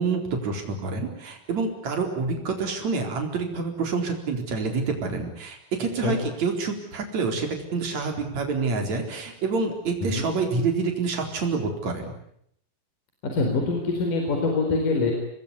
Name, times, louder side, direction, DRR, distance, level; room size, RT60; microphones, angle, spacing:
voice 1, 0.0-12.1, right 4 dB, 50° right, 4 dB, 5.3 m, -27 dB
voice 2, 13.2-15.1, left 3 dB, 60° left, 2 dB, 5.7 m, -24 dB
26.5 x 20.5 x 9.9 m, 0.72 s
omnidirectional pair, 4.2 m